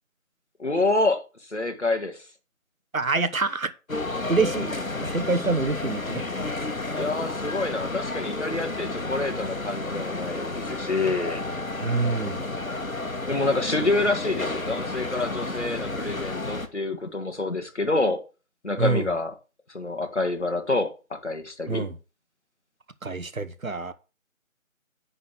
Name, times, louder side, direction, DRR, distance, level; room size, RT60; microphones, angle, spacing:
voice 1, 0.6-1.2 1.5-2.2 7.0-11.4 13.3-18.2 18.6-19.3 19.7-21.9, left 2 dB, 55° left, 1.8 m, -27 dB
voice 2, 2.9-3.7 4.3-4.7 5.0-6.2 11.8-12.5 18.8-19.1 21.7-22.0 23.0-23.9, right 3 dB, 75° right, 1.1 m, -26 dB
sound 1, 3.9-16.7, left 2 dB, 70° left, 1.6 m, -31 dB
10.0 x 3.8 x 7.1 m
figure-of-eight pair, 175°, 42 cm